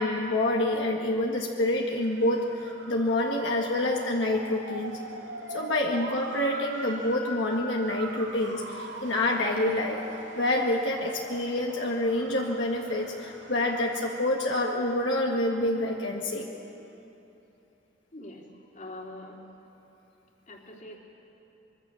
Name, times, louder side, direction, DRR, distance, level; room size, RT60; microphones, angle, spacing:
voice 1, 0.0-5.0 5.5-10.0 10.4-16.5, left 1 dB, 75° left, -1 dB, 1.8 m, -27 dB
Motor vehicle (road) / Siren, 1.9-14.6, right 2 dB, 70° right, 2.7 m, -42 dB
voice 2, 18.1-19.4 20.5-21.0, left 1 dB, 45° left, 0 dB, 3.1 m, -44 dB
25.0 x 22.5 x 7.1 m, 3.0 s
head